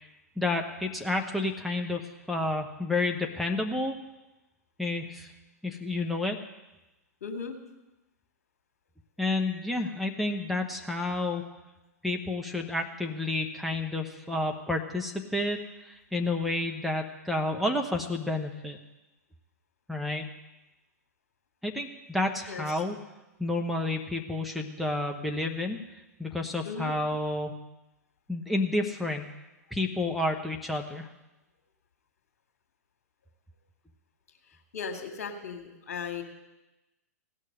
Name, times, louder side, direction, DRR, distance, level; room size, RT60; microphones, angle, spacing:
voice 1, 0.4-4.0 4.8-5.3 5.6-6.4 9.2-11.4 12.0-18.8 19.9-20.3 21.6-23.0 23.4-25.8 26.2-27.5 28.3-29.3 29.7-31.1, left 2 dB, ahead, 1 dB, 1.0 m, -30 dB
voice 2, 7.2-7.6 22.5-22.8 26.6-26.9 34.7-36.2, left 6 dB, 60° left, 5 dB, 2.1 m, -37 dB
16.5 x 6.6 x 9.9 m, 1.0 s
figure-of-eight pair, 100°, 9 cm